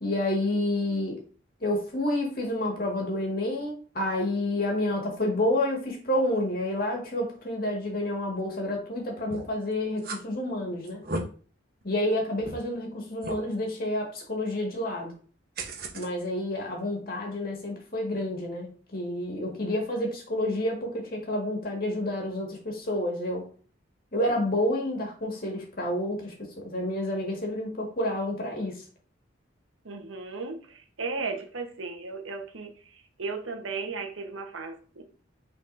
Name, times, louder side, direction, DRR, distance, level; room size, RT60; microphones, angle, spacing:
voice 1, 0.0-1.2 1.6-11.0 11.8-15.1 15.9-23.5 24.1-28.8, left 1 dB, 45° left, 1.9 m, -29 dB
sound 1, 9.3-9.6 10.0-10.2 10.8-11.2 11.8-11.9 12.4-12.5 13.2-13.4 15.6-16.1, right 2 dB, 50° right, 0.9 m, -34 dB
voice 2, 29.8-35.0, right 4 dB, 85° right, 1.2 m, -36 dB
8.8 x 4.2 x 2.6 m
head